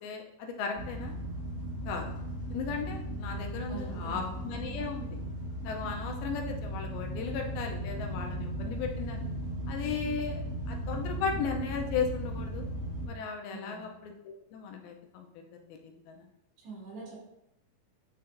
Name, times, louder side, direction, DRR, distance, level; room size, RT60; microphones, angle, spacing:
voice 1, 0.0-1.2 1.9-2.1 2.5-5.2 5.6-9.2 9.7-12.7 13.1-15.3 15.7-16.3, left 5 dB, 80° left, 2 dB, 2.4 m, -36 dB
sound 1, 0.8-13.1, right 1 dB, 35° left, 1.4 m, -37 dB
voice 2, 3.7-4.4 13.5-13.9 16.6-17.2, right 3 dB, 85° right, -5 dB, 4.2 m, -44 dB
9.3 x 4.2 x 2.6 m, 0.86 s
omnidirectional pair, 4.5 m